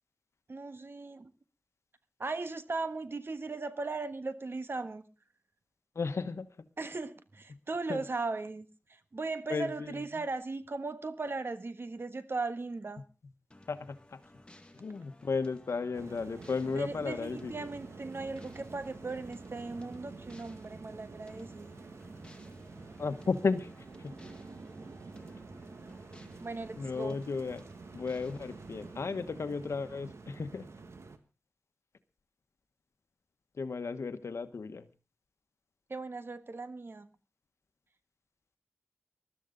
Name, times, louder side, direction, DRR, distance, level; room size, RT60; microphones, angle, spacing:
voice 1, 0.5-1.3 2.2-5.0 6.8-13.0 16.7-21.7 26.4-27.2 35.9-37.1, right 3 dB, 55° right, 11 dB, 1.4 m, -38 dB
voice 2, 5.9-6.5 7.5-7.6 7.9-8.1 9.5-10.2 13.7-14.2 14.7-17.7 23.0-23.7 24.0-24.2 26.8-27.6 27.9-30.7 33.5-34.9, left 4 dB, 85° left, 11 dB, 1.1 m, -34 dB
sound 1, 13.5-29.0, left 1 dB, 20° left, 1.9 m, -58 dB
sound 2, 15.9-31.2, right 3 dB, 80° right, 1.5 m, -48 dB
20.5 x 13.0 x 3.8 m, 0.31 s
wide cardioid pair, 70°, 5 cm